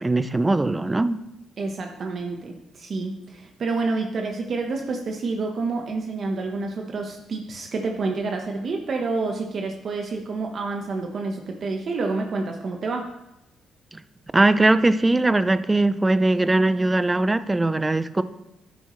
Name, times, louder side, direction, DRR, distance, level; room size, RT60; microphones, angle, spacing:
voice 1, 0.0-1.2 14.3-18.2, right 2 dB, 15° right, 13 dB, 0.5 m, -20 dB
voice 2, 1.6-13.1, right 3 dB, 50° right, 2 dB, 1.1 m, -28 dB
11.5 x 9.4 x 3.2 m, 0.88 s
cardioid pair, 90°, 0 cm